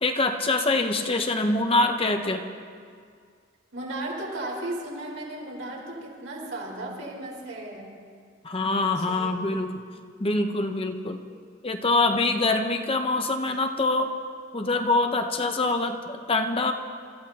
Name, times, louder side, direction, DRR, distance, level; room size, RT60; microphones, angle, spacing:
voice 1, 0.0-2.4 8.4-9.8 10.2-11.2 11.6-14.1 14.5-16.7, left 2 dB, 25° left, 5 dB, 0.8 m, -24 dB
voice 2, 3.7-7.9 8.9-9.3, right 1 dB, 70° right, -4 dB, 4.5 m, -35 dB
28.0 x 14.5 x 2.9 m, 2.1 s
head